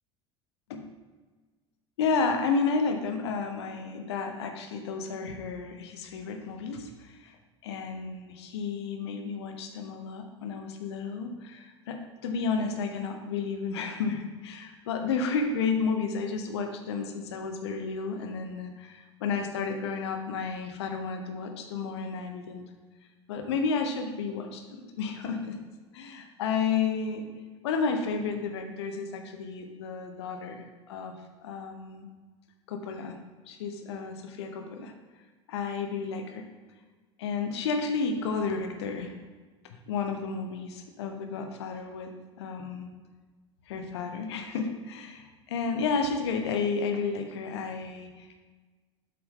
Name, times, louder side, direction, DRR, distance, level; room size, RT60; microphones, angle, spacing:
voice 1, 2.0-7.4 7.6-22.6 23.3-25.6 25.9-27.3 27.6-31.1 31.4-32.1 32.7-33.2 33.5-34.9 35.5-36.5 37.2-39.1 39.9-42.1 42.4-42.9 43.7-48.4, left 5 dB, 70° left, 5 dB, 0.9 m, -32 dB
8.0 x 5.7 x 3.8 m, 1.3 s
figure-of-eight pair, 70°, 15 cm